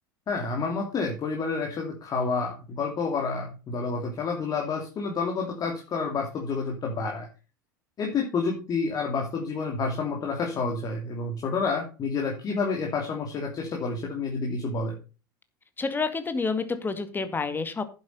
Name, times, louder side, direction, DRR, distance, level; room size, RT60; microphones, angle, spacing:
voice 1, 0.3-7.3 8.0-15.0, left 4 dB, 35° left, 1 dB, 3.0 m, -29 dB
voice 2, 15.8-17.8, left 4 dB, 20° left, 10 dB, 2.1 m, -29 dB
10.5 x 8.1 x 5.5 m, 0.33 s
figure-of-eight pair, 75°, 11 cm